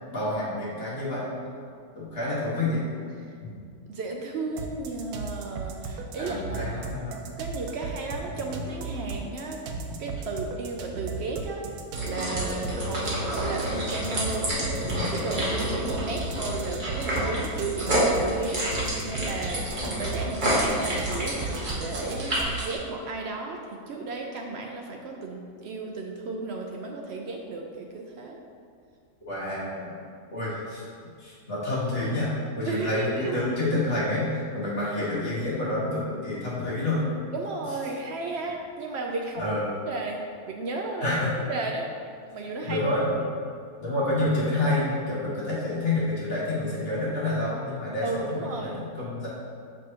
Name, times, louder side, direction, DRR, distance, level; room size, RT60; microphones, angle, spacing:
voice 1, 0.1-1.3 2.0-2.8 3.4-3.5 6.2-7.2 9.7-9.8 14.8-15.0 29.3-29.9 30.3-30.8 31.2-37.1 39.4-39.8 41.0-41.3 42.6-43.2 43.8-49.3, left 2 dB, 40° left, -8 dB, 1.6 m, -28 dB
voice 2, 3.9-6.6 7.4-9.6 10.0-11.6 12.0-14.5 15.2-18.6 19.0-22.3 22.6-28.4 32.7-33.4 37.3-39.6 39.9-41.2 41.5-41.9 42.3-42.8 48.0-48.9, right 3 dB, 70° right, 1 dB, 0.6 m, -34 dB
sound 1, 4.6-22.7, right 4 dB, 90° right, 1.1 m, -36 dB
sound 2, 11.9-22.8, equal, 35° right, 1.3 m, -29 dB
6.2 x 5.4 x 2.8 m, 2.3 s
omnidirectional pair, 1.6 m